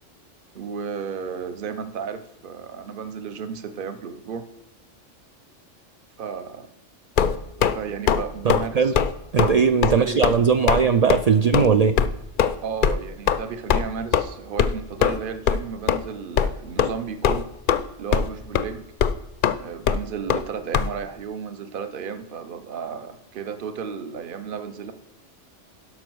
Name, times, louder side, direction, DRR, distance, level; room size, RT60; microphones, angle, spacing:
voice 1, 0.5-4.4 6.2-6.7 7.7-8.9 9.4-10.2 12.6-17.5 18.0-18.8 19.6-24.9, right 6 dB, 50° right, 10 dB, 0.9 m, -33 dB
sound 1, 7.2-7.8 8.1-8.2 8.5-8.7 8.9-9.1 9.4-9.5 9.8-10.0 10.2-10.4 10.7-10.8 11.1-11.2 11.5-11.7 12.0-12.1 12.4-12.5 12.8-12.9 13.3-13.4 13.7-13.8 14.1-14.2 14.6-14.7 15.0-15.2 15.5-15.6 15.9-16.0 16.4-16.5 16.8-16.9 17.2-17.8 18.1-18.3 18.5-18.6 19.0-19.1 19.4-19.5 19.9-20.0 20.3-20.4 20.7-20.9, left 8 dB, 55° left, 0.6 m, -20 dB
voice 2, 8.4-8.9 9.3-12.0, right 6 dB, 80° right, 8 dB, 0.3 m, -19 dB
12.0 x 5.3 x 6.2 m, 0.97 s
omnidirectional pair, 1.3 m